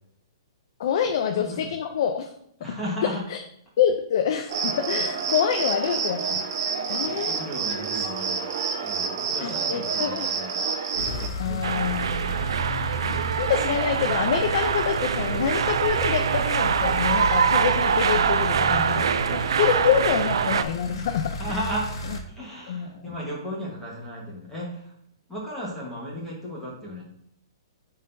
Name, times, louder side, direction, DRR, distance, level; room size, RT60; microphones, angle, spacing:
voice 1, 0.8-2.3 3.0-3.4 3.8-6.4 6.9-7.4 9.4-10.3 11.4-12.5 13.4-19.0 19.3-21.6 22.7-23.1, left 8 dB, 50° left, 6 dB, 0.5 m, -26 dB
voice 2, 1.3-1.7 2.6-3.2 7.0-8.4 8.8-10.6 11.2-12.8 18.6-19.6 21.4-21.9 22.3-24.9 25.3-27.0, equal, 5° left, -5 dB, 1.3 m, -35 dB
Cricket, 4.5-11.3, right 5 dB, 45° right, 0.8 m, -28 dB
sound 1, 11.0-22.2, equal, 80° left, 1.4 m, -34 dB
sound 2, 11.6-20.6, right 7 dB, 80° right, 0.4 m, -24 dB
10.0 x 3.8 x 2.6 m, 0.73 s
hypercardioid pair, 170°, 3 cm